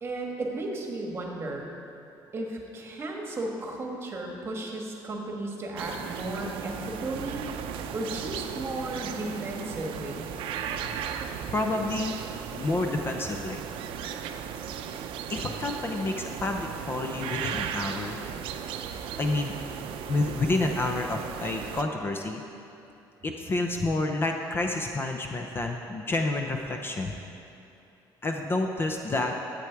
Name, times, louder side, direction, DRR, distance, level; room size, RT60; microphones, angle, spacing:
voice 1, 0.0-1.7 2.3-10.3, right 2 dB, 30° right, 0 dB, 1.4 m, -34 dB
sound 1, 5.8-21.8, right 8 dB, 90° right, 0.6 m, -36 dB
voice 2, 11.5-12.2 12.5-13.6 15.3-18.2 19.2-19.5 20.1-22.4 23.2-27.1 28.2-29.3, left 2 dB, 25° left, 3 dB, 0.6 m, -29 dB
12.0 x 8.5 x 4.6 m, 2.8 s
cardioid pair, 150°, 9 cm